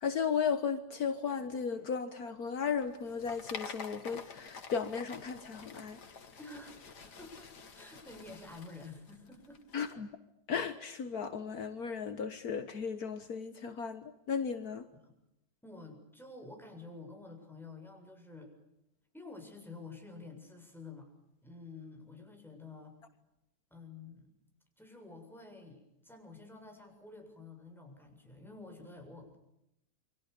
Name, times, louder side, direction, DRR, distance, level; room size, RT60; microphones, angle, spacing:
voice 1, 0.0-6.0 9.7-10.1 10.5-14.9, left 6 dB, 65° left, 10 dB, 1.8 m, -35 dB
sound 1, 2.8-9.9, left 5 dB, 90° left, 2.6 m, -49 dB
voice 2, 6.4-9.6 15.0-15.1 15.6-18.5 19.1-21.1 21.4-23.0 23.7-24.3 24.8-29.4, left 3 dB, ahead, 2 dB, 7.4 m, -50 dB
29.5 x 25.5 x 6.9 m, 0.85 s
omnidirectional pair, 1.7 m